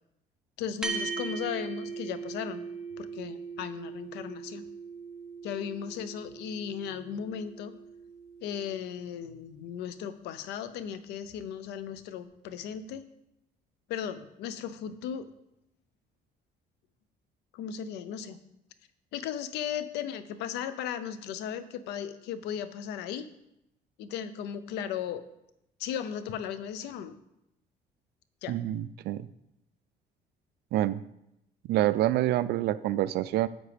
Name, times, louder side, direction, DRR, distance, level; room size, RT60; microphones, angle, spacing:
voice 1, 0.6-2.6 3.0-4.6 5.4-7.7 8.4-13.0 13.9-15.3 17.5-18.4 19.1-23.3 24.0-25.2 25.8-27.1 28.4-28.6, left 8 dB, 85° left, 13 dB, 0.7 m, -36 dB
sound 1, 0.8-9.5, right 5 dB, 5° right, 1.1 m, -40 dB
voice 2, 28.5-29.3 30.7-31.0 31.7-33.5, right 14 dB, 75° right, 15 dB, 0.4 m, -27 dB
10.0 x 8.1 x 3.4 m, 0.83 s
cardioid pair, 110°, 17 cm